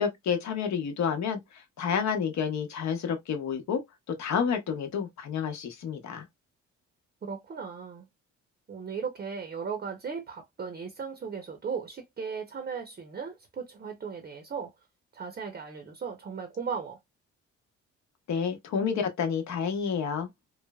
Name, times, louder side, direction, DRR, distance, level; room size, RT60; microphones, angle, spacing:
voice 1, 0.0-3.8 4.1-6.3 18.3-20.3, left 7 dB, 65° left, 0.9 m, -29 dB
voice 2, 7.2-8.1 8.7-14.7 15.1-17.0, right 6 dB, 30° right, 0.7 m, -37 dB
3.1 x 2.0 x 2.2 m
cardioid pair, 90°, 30 cm